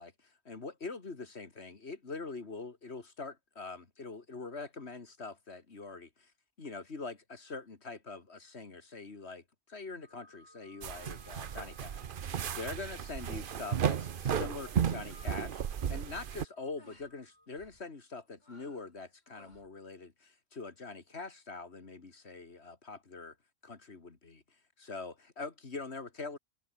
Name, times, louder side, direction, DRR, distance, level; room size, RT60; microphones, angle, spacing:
voice 1, 0.0-6.3 6.6-23.4 23.6-24.4 24.8-26.4, left 3 dB, 75° left, 2.6 m, -44 dB
sound 1, 10.0-17.5, left 1 dB, 20° left, 6.4 m, -64 dB
sound 2, 10.8-16.4, right 8 dB, 55° right, 0.9 m, -34 dB
sound 3, 14.2-14.6 14.8-15.4 15.7-16.0 16.8-17.1 17.5-17.8 18.4-18.9 19.3-19.7, left 1 dB, 40° left, 5.1 m, -60 dB
omnidirectional pair, 1.1 m